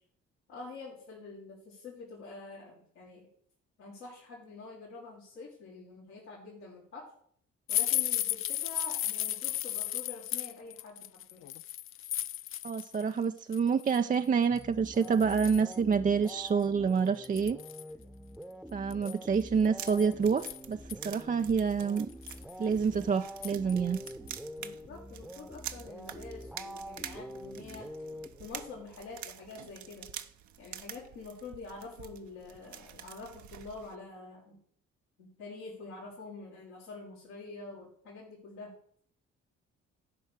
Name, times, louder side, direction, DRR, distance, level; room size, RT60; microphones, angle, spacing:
voice 1, 0.5-3.3 3.8-7.1 7.7-11.4 24.6-27.9 28.4-30.1 30.6-34.6 35.2-38.7, left 3 dB, 80° left, -7 dB, 2.5 m, -46 dB
sound 1, 7.7-13.0 13.4-14.0 14.6-14.7 15.0-15.8 16.3-16.4 16.6-16.7 17.2-17.9 18.9-20.9 21.5-21.6 22.0-22.5 23.4-23.7 24.1-24.3 24.7-24.8, left 12 dB, 40° left, 0.4 m, -34 dB
voice 2, 12.6-17.6 18.7-20.8 21.0-22.1 22.6-24.0, right 6 dB, 25° right, 8 dB, 0.5 m, -28 dB
sound 2, 14.5-28.8, equal, ahead, 0.9 m, -46 dB
Étincelles feu, 19.5-34.0, right 10 dB, 55° right, 0.8 m, -47 dB
12.5 x 5.4 x 6.4 m, 0.63 s
figure-of-eight pair, 45°, 35 cm